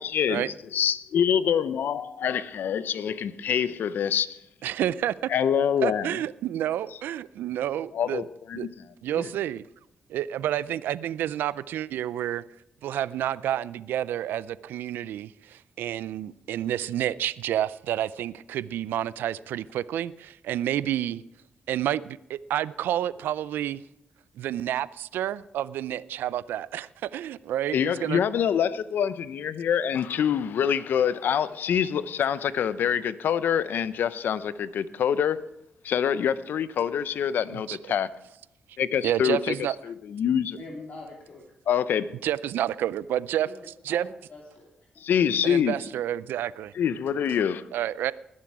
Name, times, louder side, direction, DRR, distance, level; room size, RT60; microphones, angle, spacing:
voice 1, 0.0-4.4 5.3-6.2 7.9-8.7 9.1-9.3 27.7-35.4 35.8-38.1 38.8-39.5 39.8-40.6 41.7-42.1 45.0-45.8 46.8-47.6, left 8 dB, 75° left, 0.7 m, -25 dB
voice 2, 4.6-5.1 5.8-8.2 8.5-8.7 9.0-9.7 10.1-12.4 12.8-21.2 21.7-23.8 24.4-28.2 37.5-37.8 39.0-39.7 42.2-43.5 43.8-44.1 45.4-46.7 47.7-48.1, right 11 dB, 85° right, 0.4 m, -29 dB
voice 3, 40.6-41.5 43.4-43.5 43.9-44.7 44.9-45.0 45.5-45.8, left 2 dB, 50° left, 3.0 m, -44 dB
20.5 x 7.5 x 4.7 m
supercardioid pair, 55°, 3 cm